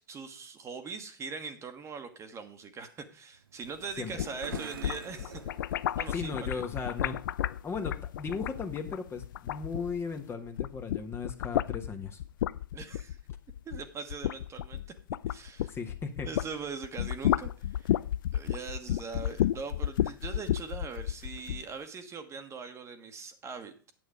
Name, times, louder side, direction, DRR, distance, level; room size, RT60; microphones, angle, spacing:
voice 1, 0.1-5.4 5.9-6.6 12.7-13.2 13.6-14.8 15.3-15.8 16.2-18.0 18.3-23.9, right 5 dB, 25° right, 8 dB, 1.4 m, -41 dB
sound 1, 3.3-6.9, right 7 dB, 80° right, 0.7 m, -48 dB
sound 2, 4.0-10.2 10.5-16.5 16.8-21.6, left 12 dB, 65° left, 0.4 m, -32 dB
voice 2, 6.1-7.3 7.6-12.2 15.7-16.3, left 5 dB, 20° left, 6 dB, 1.3 m, -37 dB
9.1 x 7.9 x 4.9 m, 0.38 s
hypercardioid pair, 100°, 11 cm